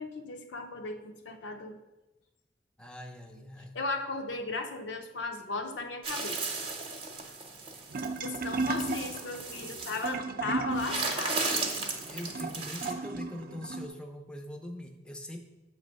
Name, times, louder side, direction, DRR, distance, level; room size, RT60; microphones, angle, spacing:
voice 1, 0.0-1.8 3.7-6.4 8.2-11.6, left 3 dB, 85° left, 5 dB, 0.6 m, -36 dB
voice 2, 2.8-3.8 10.4-10.5 12.1-15.4, left 1 dB, 5° left, 4 dB, 0.5 m, -42 dB
sound 1, 6.0-10.1 10.7-12.9, right 3 dB, 30° right, 0.8 m, -35 dB
sound 2, 7.9-13.9, right 3 dB, 55° right, 0.5 m, -35 dB
7.4 x 3.1 x 5.2 m, 1.0 s
head